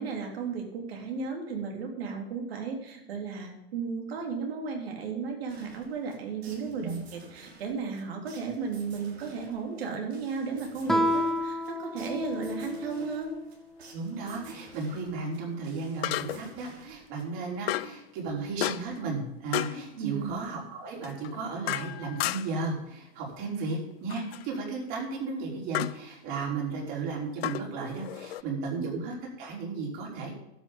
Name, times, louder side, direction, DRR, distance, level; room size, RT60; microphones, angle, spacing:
voice 1, 0.0-13.3 20.0-20.3 28.7-28.8, right 5 dB, 70° right, 2 dB, 3.9 m, -34 dB
sound 1, 5.5-17.6, right 3 dB, 90° right, 6.0 m, -53 dB
Guitar, 10.9-13.3, left 1 dB, ahead, 0.4 m, -30 dB
sound 2, 12.3-12.5 16.0-16.6 17.7-18.0 18.6-19.0 19.5-19.8 21.0-22.7 24.1-24.5 25.7-26.0 27.4-28.4, left 15 dB, 75° left, 0.6 m, -33 dB
voice 2, 13.9-30.4, right 4 dB, 45° right, -2 dB, 5.5 m, -34 dB
12.5 x 6.4 x 9.0 m, 0.85 s
supercardioid pair, 140°, 31 cm